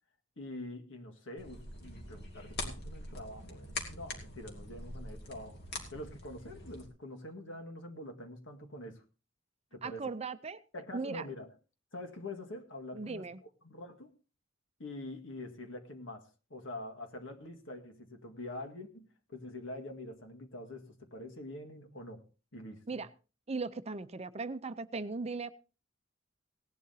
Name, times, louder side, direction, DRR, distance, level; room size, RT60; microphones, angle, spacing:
voice 1, 0.4-5.6 5.9-9.0 9.7-10.1 10.7-11.5 11.9-13.3 13.6-14.1 14.8-22.2 22.5-23.0, left 1 dB, 75° left, 5 dB, 1.9 m, -45 dB
sound 1, 1.4-6.9, left 2 dB, 55° left, 2.6 m, -44 dB
voice 2, 9.8-10.6 10.9-11.2 12.9-13.4 22.9-23.1 23.5-25.5, right 4 dB, 30° right, 12 dB, 0.6 m, -38 dB
18.0 x 11.5 x 2.8 m, 0.33 s
head